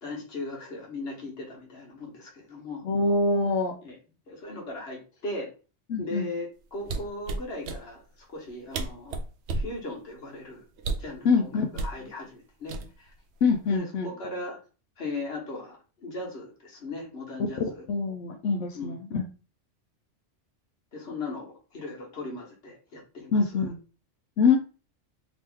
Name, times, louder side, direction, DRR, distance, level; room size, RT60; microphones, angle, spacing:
voice 1, 0.0-2.8 3.8-4.0 4.3-5.5 6.0-9.2 9.5-10.6 11.0-13.1 13.7-14.6 15.0-17.8 18.7-19.0 20.9-23.6 24.5-24.6, left 2 dB, 60° left, -1 dB, 1.5 m, -38 dB
voice 2, 2.8-3.8 5.9-6.3 11.2-11.7 13.4-14.1 17.9-19.3 23.3-23.8 24.4-24.6, left 4 dB, 85° left, 2 dB, 1.0 m, -24 dB
sound 1, 6.8-7.8 8.5-8.6 8.7-9.7 10.8-11.1 11.7-12.0 12.7-13.2 13.5-13.8, right 3 dB, 70° right, 0.8 m, -31 dB
3.0 x 2.9 x 3.5 m, 0.34 s
omnidirectional pair, 1.2 m